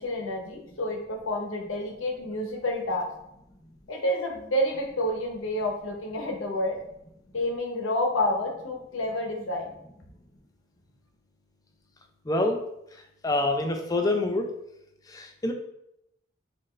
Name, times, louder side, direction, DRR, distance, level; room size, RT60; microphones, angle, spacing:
voice 1, 0.0-3.1 3.9-6.8 7.3-9.7, left 1 dB, 90° left, 2 dB, 0.8 m, -29 dB
voice 2, 12.3-12.6 13.2-14.5 15.1-15.5, left 2 dB, 20° left, 4 dB, 0.4 m, -26 dB
4.3 x 2.5 x 3.1 m, 0.80 s
head